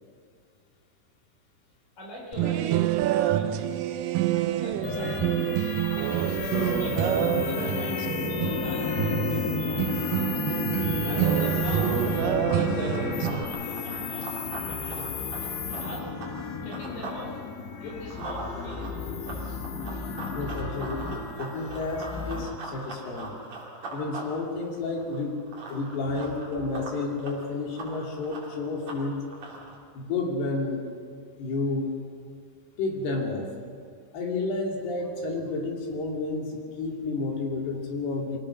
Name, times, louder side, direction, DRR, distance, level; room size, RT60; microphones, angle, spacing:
voice 1, 2.0-3.9 4.3-5.4 6.0-8.0 8.3-10.3 11.0-15.3 15.8-16.1 16.6-17.4 17.7-20.1 26.0-26.2, equal, 50° left, -2 dB, 5.8 m, -42 dB
sound 1, 2.3-13.4, right 12 dB, 85° right, 1.9 m, -27 dB
sound 2, 4.8-22.4, left 6 dB, 90° left, 3.9 m, -32 dB
Run, 11.9-17.2 17.6-29.8, right 2 dB, 40° right, 4.1 m, -41 dB
voice 2, 20.3-23.4 23.9-25.4 25.7-29.2 29.9-30.9 31.4-32.0 32.8-33.5 34.1-38.4, left 3 dB, 70° left, 0 dB, 4.5 m, -31 dB
25.0 x 17.0 x 6.4 m, 2.1 s
omnidirectional pair, 4.8 m